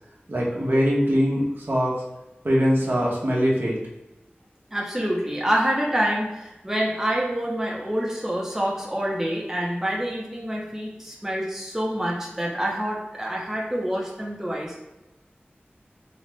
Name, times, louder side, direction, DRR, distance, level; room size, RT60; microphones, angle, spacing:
voice 1, 0.3-2.0 2.4-3.8, equal, 65° right, -5 dB, 1.0 m, -22 dB
voice 2, 4.7-14.8, equal, 10° right, -4 dB, 0.8 m, -27 dB
4.0 x 2.4 x 3.2 m, 1.0 s
wide cardioid pair, 55°, 4 cm